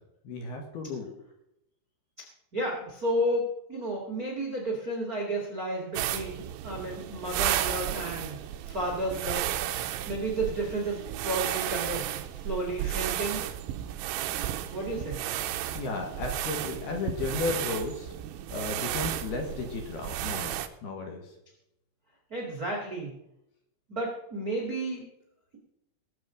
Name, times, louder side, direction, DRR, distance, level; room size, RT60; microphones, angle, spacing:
voice 1, 0.2-1.1 15.7-18.1 18.5-20.6 20.8-21.2, left 4 dB, 60° left, 2 dB, 3.1 m, -34 dB
voice 2, 2.5-9.6 10.0-13.4 14.7-15.2 22.3-23.1 23.9-25.1, right 1 dB, 55° right, -2 dB, 0.9 m, -32 dB
sound 1, 6.0-20.7, right 12 dB, 85° right, 3.4 m, -33 dB
20.5 x 7.6 x 5.1 m, 0.84 s
omnidirectional pair, 5.9 m